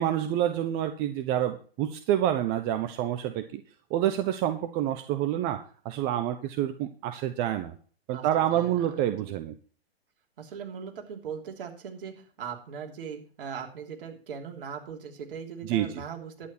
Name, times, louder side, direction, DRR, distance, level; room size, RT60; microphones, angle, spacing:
voice 1, 0.0-3.6 3.9-7.7 8.1-9.5 15.6-16.0, right 11 dB, 30° right, 8 dB, 1.0 m, -28 dB
voice 2, 8.1-8.8 9.2-9.3 10.4-16.5, right 7 dB, 60° right, 2 dB, 3.1 m, -40 dB
11.5 x 9.3 x 4.4 m, 0.42 s
hypercardioid pair, 120°, 32 cm